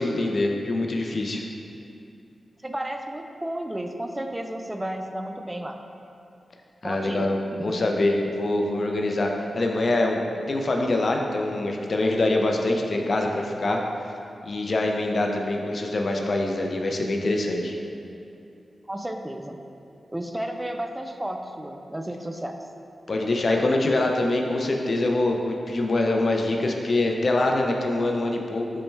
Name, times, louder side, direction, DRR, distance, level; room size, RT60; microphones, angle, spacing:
voice 1, 0.0-1.4 6.8-7.4 7.6-10.2 10.5-13.8 14.4-17.7 23.1-28.6, left 2 dB, 55° left, 2 dB, 0.5 m, -24 dB
voice 2, 2.6-5.8 6.8-7.8 18.9-19.7 20.1-22.6, right 1 dB, 15° right, 5 dB, 0.3 m, -33 dB
5.4 x 2.1 x 4.4 m, 2.7 s
cardioid pair, 45°, 0 cm